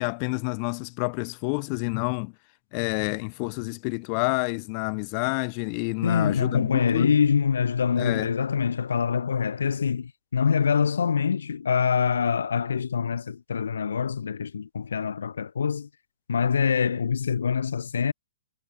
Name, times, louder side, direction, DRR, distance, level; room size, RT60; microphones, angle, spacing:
voice 1, 0.0-2.3 2.7-7.1 8.0-8.3, left 40 dB or more, 35° left, 2.8 m, -28 dB
voice 2, 6.0-15.9 16.3-18.1, left 6 dB, 85° left, 1.8 m, -25 dB
hypercardioid pair, 145°, 0 cm